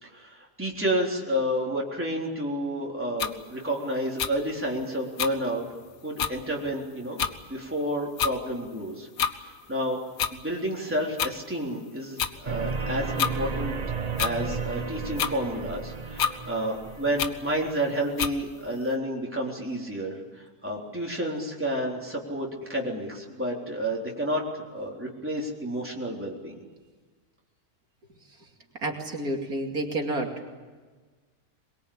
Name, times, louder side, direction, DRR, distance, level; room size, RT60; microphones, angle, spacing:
voice 1, 0.0-5.7 6.0-9.1 9.4-10.0 10.3-13.8 14.2-24.5 24.7-26.5, equal, 10° right, -2 dB, 3.9 m, -30 dB
sound 1, 3.2-3.3 4.2-4.3 5.2-5.3 5.8-5.9 6.2-6.3 7.2-7.3 8.2-8.3 9.2-9.3 10.2-10.3 11.2-11.3 12.2-12.3 13.2-13.3 14.2-14.4 15.2-15.3 16.2-16.3 17.2-17.3 18.2-18.3, left 8 dB, 70° left, 1.5 m, -27 dB
sound 2, 12.4-17.7, right 5 dB, 30° right, 0.9 m, -33 dB
voice 2, 28.8-30.3, right 2 dB, 75° right, 1 dB, 3.0 m, -29 dB
22.5 x 22.5 x 8.8 m, 1.4 s
omnidirectional pair, 1.6 m